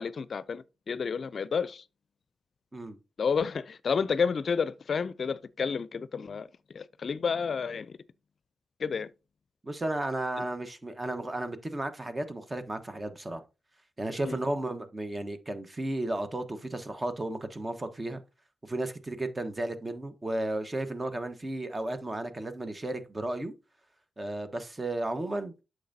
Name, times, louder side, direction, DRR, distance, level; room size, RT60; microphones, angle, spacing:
voice 1, 0.0-1.8 3.2-6.5 6.7-8.0 8.8-9.1 14.3-14.4, left 6 dB, 60° left, 0.4 m, -30 dB
voice 2, 9.6-13.4 14.0-18.2 18.7-23.5 24.2-25.5, right 1 dB, 30° right, 1.3 m, -34 dB
8.4 x 6.4 x 2.7 m
supercardioid pair, 50°, 0 cm